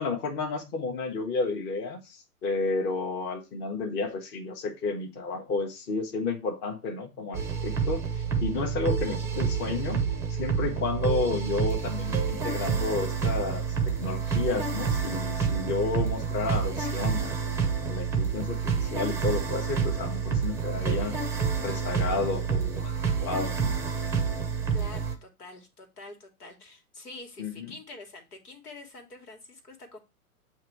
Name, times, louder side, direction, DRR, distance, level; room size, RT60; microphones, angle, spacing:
voice 1, 0.0-8.0 8.4-10.0 10.3-17.4 17.8-21.2 21.6-22.9 23.2-23.8 27.4-27.7, left 3 dB, 25° left, 1.0 m, -31 dB
sound 1, 7.3-25.1, right 6 dB, 5° right, 0.6 m, -28 dB
voice 2, 24.7-30.0, left 2 dB, 85° left, 1.8 m, -46 dB
7.8 x 2.7 x 4.5 m
figure-of-eight pair, 115°, 45 cm